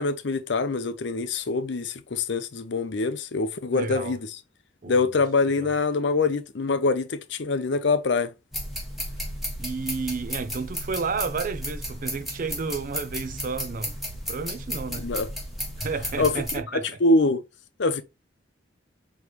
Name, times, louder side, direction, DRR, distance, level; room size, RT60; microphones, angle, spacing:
voice 1, 0.0-4.3 4.9-8.3 14.9-15.3 16.2-16.4 16.7-17.4 17.8-18.0, left 3 dB, 65° left, 0.6 m, -24 dB
voice 2, 3.7-4.1 4.8-5.0 5.6-5.7 9.6-14.0 14.3-15.1 15.8-16.9, right 4 dB, 45° right, 0.5 m, -31 dB
sound 1, 8.5-16.6, equal, ahead, 1.4 m, -34 dB
4.9 x 3.1 x 3.0 m
head